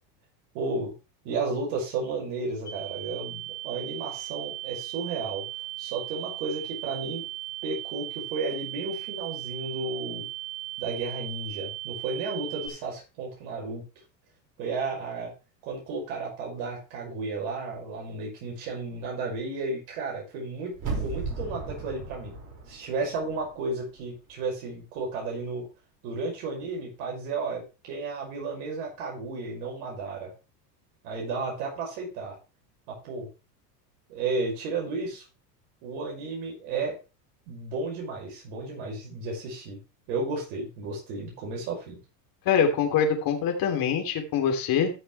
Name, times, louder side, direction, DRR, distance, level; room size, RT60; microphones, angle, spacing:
voice 1, 0.5-0.9 1.2-5.4 5.8-7.2 7.6-10.2 10.8-13.8 14.6-15.3 15.6-20.7 21.0-22.4 22.7-25.6 26.0-30.3 31.0-32.4 32.9-33.3 34.1-35.2 35.8-36.9 37.5-39.8 40.1-42.0, right 3 dB, 60° right, -1 dB, 5.9 m, -33 dB
sound 1, 2.7-12.7, right 17 dB, 20° left, 3.6 m, -37 dB
sound 2, 20.7-23.7 24.0-24.1, right 4 dB, 40° right, 5.4 m, -35 dB
voice 2, 42.4-44.9, left 7 dB, 45° left, 3 dB, 3.2 m, -24 dB
14.0 x 6.8 x 3.3 m, 0.30 s
supercardioid pair, 110°, 49 cm